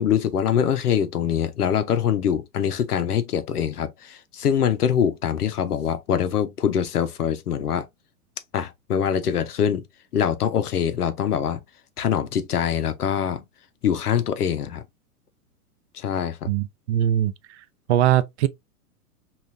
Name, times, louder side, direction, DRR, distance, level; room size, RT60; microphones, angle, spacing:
voice 1, 0.0-7.9 8.5-9.8 10.1-11.6 12.0-13.4 13.8-14.8 15.9-16.5, left 8 dB, 80° left, 0.8 m, -24 dB
voice 2, 16.5-17.3 17.9-18.5, right 12 dB, 50° right, 0.5 m, -21 dB
5.5 x 2.5 x 2.6 m
hypercardioid pair, 105°, 46 cm